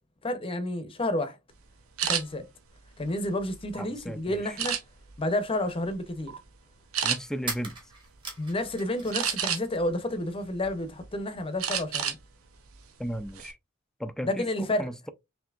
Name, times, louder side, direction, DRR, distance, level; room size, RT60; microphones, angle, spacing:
voice 1, 0.2-1.4 2.1-2.5 3.0-4.8 5.2-6.3 8.4-12.2 14.2-14.9, left 1 dB, 25° left, 0.7 m, -30 dB
sound 1, 2.0-2.2 2.9-3.8 4.6-5.2 5.7-5.9 6.3-6.4 6.9-7.2 9.1-9.8 10.3-11.1 11.6-12.2 12.5-12.7 13.1-13.5, right 8 dB, 80° right, 0.8 m, -30 dB
voice 2, 3.8-4.4 7.0-7.8 13.0-13.6 14.0-15.1, equal, 5° left, 0.3 m, -35 dB
sound 2, 7.4-9.3 9.6-10.5, right 3 dB, 25° right, 1.4 m, -40 dB
5.7 x 2.7 x 2.4 m
head